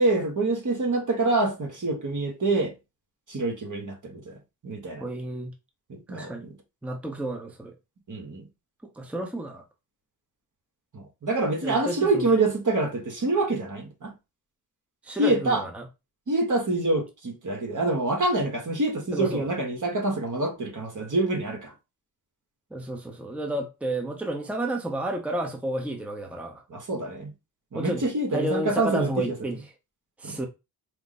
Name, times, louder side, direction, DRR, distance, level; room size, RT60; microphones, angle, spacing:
voice 1, 0.0-2.7 3.3-4.4 4.6-5.1 5.9-6.5 8.1-8.4 10.9-14.1 15.2-15.6 16.3-21.7 26.7-27.3 27.7-29.4 30.2-30.4, right 2 dB, 50° right, 1.4 m, -26 dB
voice 2, 5.0-5.5 6.1-6.5 6.8-7.7 9.0-9.6 11.6-12.2 15.0-15.9 19.1-19.5 22.7-26.6 27.7-28.0 28.3-29.6 30.2-30.5, right 1 dB, 5° right, 0.7 m, -31 dB
4.5 x 2.1 x 4.0 m
cardioid pair, 75°, 38 cm